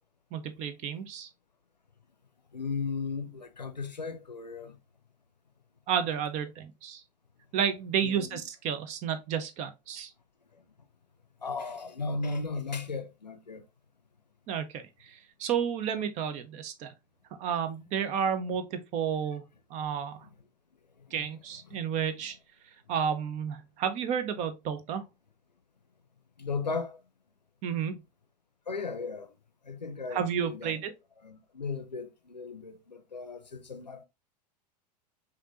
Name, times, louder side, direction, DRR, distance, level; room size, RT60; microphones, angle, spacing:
voice 1, 0.3-1.3 5.9-7.0 7.5-10.1 14.5-16.9 17.4-19.4 19.7-20.3 21.1-22.4 22.9-25.0 27.6-28.0 30.1-30.9, right 8 dB, 35° right, 0.7 m, -31 dB
voice 2, 2.5-4.8 8.0-8.4 10.6-10.7 11.4-13.6 20.2-20.3 21.0-21.1 21.7-21.8 26.4-27.0 28.7-29.3 29.6-30.8 31.2-34.0, left 4 dB, 85° left, 0.6 m, -36 dB
5.1 x 2.7 x 2.8 m
figure-of-eight pair, 90°, 21 cm